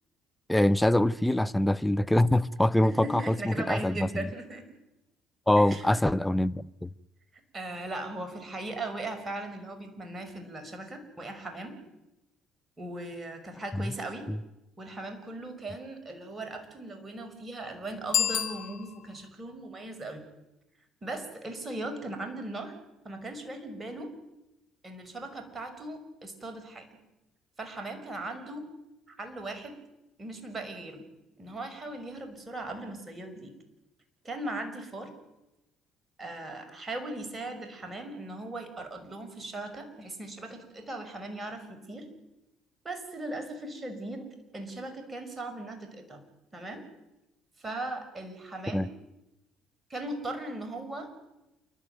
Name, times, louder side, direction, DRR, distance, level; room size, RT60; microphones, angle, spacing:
voice 1, 0.5-4.3 5.5-6.9 13.7-13.8 14.3-14.4 48.7-48.9, left 1 dB, 5° left, 0.8 m, -24 dB
voice 2, 2.8-4.7 5.6-6.0 7.5-11.8 12.8-14.3 14.8-20.2 21.0-22.7 23.0-24.1 24.8-27.0 27.6-28.6 29.1-29.8 30.2-31.1 31.4-33.5 34.2-35.1 36.2-42.1 42.8-46.2 46.5-46.8 47.6-48.9 49.9-51.1, right 2 dB, 30° right, 5.9 m, -38 dB
Bicycle bell, 18.0-19.3, left 9 dB, 65° left, 1.8 m, -30 dB
28.5 x 12.0 x 9.4 m
hypercardioid pair, 55°, 0 cm